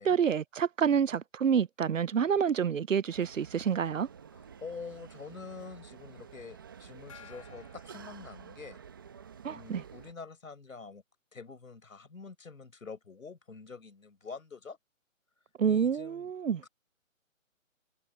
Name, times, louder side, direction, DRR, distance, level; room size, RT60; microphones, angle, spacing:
voice 1, 0.0-4.1 9.4-9.8 15.6-16.6, right 7 dB, 70° right, 0.8 m, -28 dB
sound 1, 3.1-10.1, right 7 dB, 15° right, 1.3 m, -50 dB
voice 2, 4.3-8.8 9.5-11.0 11.3-14.8 15.6-16.3 16.6-16.7, left 4 dB, 75° left, 5.8 m, -46 dB
Gong, 7.1-9.1, left 9 dB, 25° left, 1.7 m, -56 dB
hypercardioid pair, 170°, 41 cm